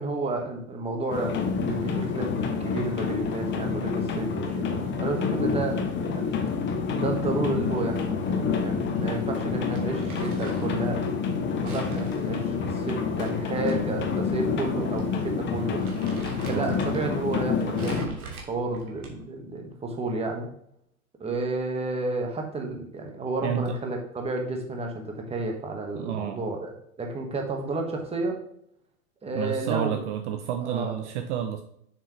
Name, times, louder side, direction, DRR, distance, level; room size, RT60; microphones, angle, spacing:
voice 1, 0.0-2.3 2.6-6.4 6.9-11.0 11.6-15.8 16.5-20.5 21.2-26.7 27.0-28.4 29.2-30.0 30.6-30.9, right 2 dB, 15° right, 2 dB, 1.6 m, -31 dB
sound 1, 1.1-18.1, left 5 dB, 25° left, 1.2 m, -28 dB
Crumpling crinkling, 9.7-10.8 11.7-13.7 14.1-14.2 15.0-15.2 15.5-17.1 17.8-19.4, right 4 dB, 80° right, 2.3 m, -43 dB
voice 2, 23.4-24.0 25.9-26.4 29.3-31.6, right 9 dB, 50° right, 7 dB, 0.8 m, -30 dB
7.1 x 6.7 x 3.2 m, 0.71 s
hypercardioid pair, 105°, 44 cm